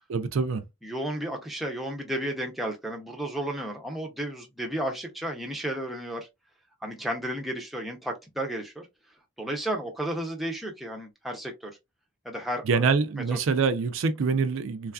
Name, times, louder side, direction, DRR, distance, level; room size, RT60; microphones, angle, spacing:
voice 1, 0.1-0.6 12.7-14.9, right 5 dB, 65° right, 0.4 m, -25 dB
voice 2, 0.8-6.3 6.8-8.9 9.4-11.7 12.2-12.9 13.3-13.4, right 1 dB, ahead, 0.5 m, -33 dB
3.2 x 2.4 x 2.2 m
head